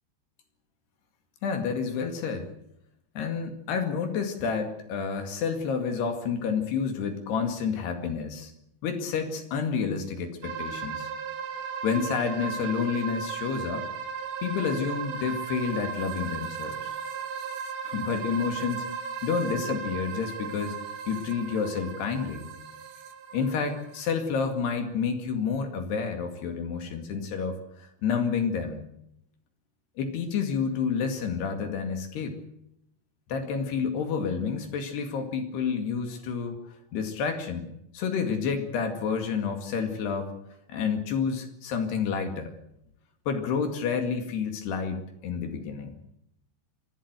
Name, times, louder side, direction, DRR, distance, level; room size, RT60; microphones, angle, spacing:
voice 1, 1.4-2.5 3.2-8.5 8.8-11.1 11.8-13.9 14.4-16.9 17.8-18.9 19.2-20.8 21.1-22.5 23.3-28.9 30.0-32.4 33.3-40.3 40.7-42.6 43.3-45.9, left 6 dB, 70° left, 6 dB, 4.2 m, -29 dB
sound 1, 10.4-24.0, right 7 dB, 80° right, 4.4 m, -36 dB
24.5 x 16.0 x 8.1 m, 0.76 s
omnidirectional pair, 5.0 m